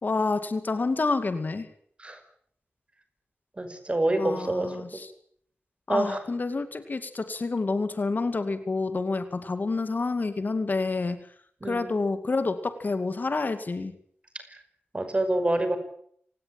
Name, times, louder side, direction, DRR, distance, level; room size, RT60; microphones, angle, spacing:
voice 1, 0.0-1.7 4.2-5.1 5.9-11.2 11.6-13.9, left 3 dB, 45° left, 10 dB, 2.3 m, -28 dB
voice 2, 3.6-4.8 5.9-6.2 11.6-11.9 14.9-15.8, right 1 dB, 30° right, 9 dB, 5.5 m, -26 dB
27.5 x 18.0 x 9.0 m, 0.65 s
wide cardioid pair, 95°, 4 cm